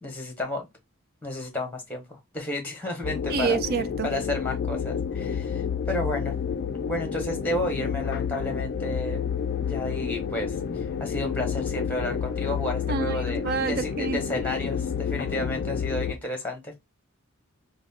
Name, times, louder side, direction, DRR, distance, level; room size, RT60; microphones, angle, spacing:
voice 1, 0.0-0.7 1.2-3.6 4.0-6.3 6.9-9.2 9.6-16.8, left 1 dB, 10° left, 1.1 m, -32 dB
sound 1, 3.0-16.1, left 7 dB, 50° left, 0.3 m, -30 dB
voice 2, 3.3-4.1 12.9-14.2, right 5 dB, 45° right, 0.4 m, -28 dB
3.8 x 2.1 x 3.5 m
head